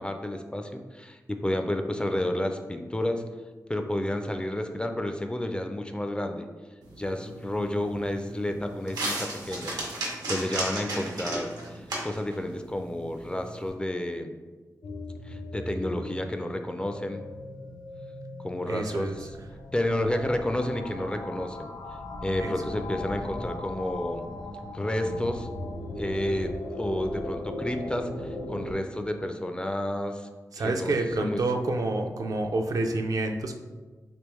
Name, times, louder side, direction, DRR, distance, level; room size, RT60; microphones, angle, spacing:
voice 1, 0.0-3.2 3.7-6.5 7.0-9.8 10.3-14.4 15.2-17.2 18.4-19.3 19.7-21.7 22.2-24.2 24.7-25.5 26.0-30.3 30.6-31.4, left 1 dB, 15° left, 6 dB, 0.3 m, -31 dB
sound 1, 6.8-13.7, right 2 dB, 85° right, 0.8 m, -36 dB
sound 2, 14.8-28.7, left 1 dB, 80° left, 0.5 m, -38 dB
voice 2, 18.6-19.2 22.4-22.5 30.5-33.5, right 2 dB, 60° right, 4 dB, 0.4 m, -28 dB
3.4 x 2.9 x 3.0 m, 1.3 s
cardioid pair, 50°, 7 cm